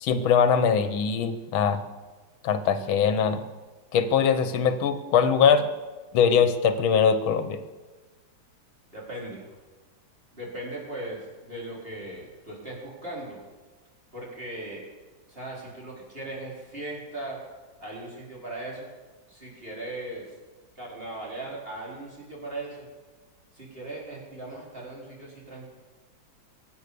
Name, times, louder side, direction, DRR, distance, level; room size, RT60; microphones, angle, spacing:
voice 1, 0.0-1.8 2.4-3.4 3.9-5.7 6.1-7.6, left 7 dB, 85° left, 10 dB, 1.7 m, -22 dB
voice 2, 8.9-9.5 10.3-13.4 14.1-14.8 15.3-17.4 17.8-18.9 19.3-20.3 20.8-22.9 23.5-25.7, right 2 dB, 25° right, -4 dB, 4.5 m, -38 dB
23.5 x 8.2 x 6.8 m, 1.3 s
omnidirectional pair, 2.2 m